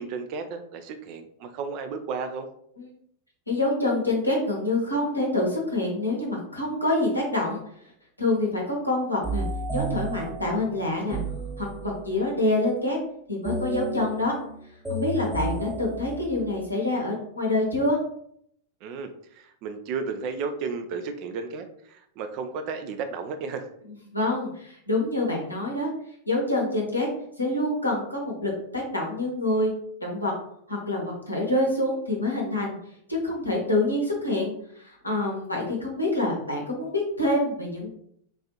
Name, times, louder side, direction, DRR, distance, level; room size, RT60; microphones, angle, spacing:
voice 1, 0.0-2.5 18.8-23.7, right 5 dB, 45° right, 8 dB, 0.3 m, -33 dB
voice 2, 3.5-7.6 8.2-9.4 9.7-11.2 11.6-13.0 13.3-14.3 14.9-18.0 24.1-25.9 26.3-27.1 27.4-29.7 30.0-30.3 30.7-32.8 33.1-37.9, left 2 dB, 85° left, -3 dB, 0.9 m, -26 dB
sound 1, 9.2-12.2 13.4-16.7, right 2 dB, 5° right, 0.7 m, -33 dB
3.8 x 2.5 x 2.8 m, 0.70 s
figure-of-eight pair, 90°, 0 cm